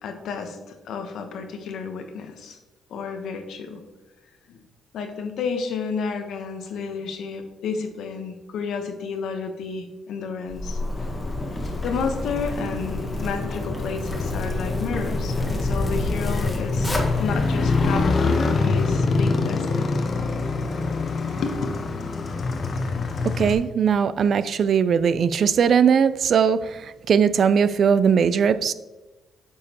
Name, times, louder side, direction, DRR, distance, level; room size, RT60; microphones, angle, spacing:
voice 1, 0.0-2.6 2.9-3.8 4.5-4.6 4.9-10.8 11.8-19.9 21.4-21.5, left 5 dB, 75° left, 0.9 m, -31 dB
Zipper (clothing), 10.5-18.0, left 1 dB, 15° left, 1.3 m, -29 dB
Motorcycle, 11.0-23.5, left 3 dB, 45° left, 0.7 m, -26 dB
voice 2, 23.2-28.7, right 7 dB, 55° right, 0.3 m, -20 dB
8.4 x 5.0 x 2.9 m
cardioid pair, 90°, 0 cm